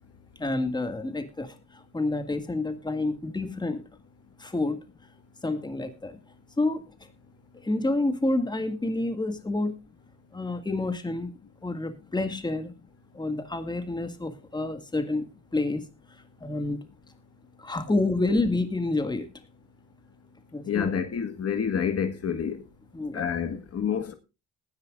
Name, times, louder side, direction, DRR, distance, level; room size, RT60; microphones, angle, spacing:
voice 1, 0.4-1.6 1.9-3.8 4.4-4.8 5.4-6.2 6.6-6.8 7.6-9.7 10.3-11.3 11.6-12.7 13.1-15.3 15.5-15.9 16.4-16.8 17.6-19.3 20.5-20.9 22.9-23.3, left 2 dB, 15° left, 2.0 m, -28 dB
voice 2, 20.7-22.6 23.1-24.1, left 7 dB, 55° left, 1.7 m, -28 dB
19.5 x 10.5 x 2.5 m
cardioid pair, 90°, 30 cm